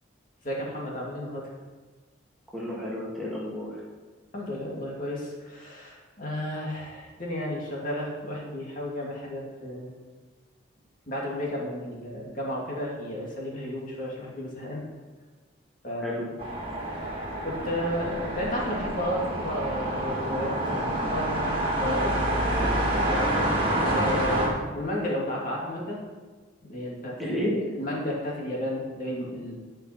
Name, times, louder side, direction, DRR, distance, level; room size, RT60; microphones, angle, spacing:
voice 1, 0.4-1.5 4.3-9.9 11.1-14.8 15.8-16.3 16.9-21.3 21.8-23.5 23.8-26.0 26.7-27.3 27.8-29.5, left 1 dB, 40° left, -4 dB, 2.3 m, -33 dB
voice 2, 2.5-3.8 16.0-16.2 22.5-22.8 27.2-27.6, equal, ahead, -7 dB, 2.2 m, -31 dB
sound 1, 16.4-24.5, right 1 dB, 25° right, 2.4 m, -27 dB
17.0 x 5.8 x 4.4 m, 1.3 s
head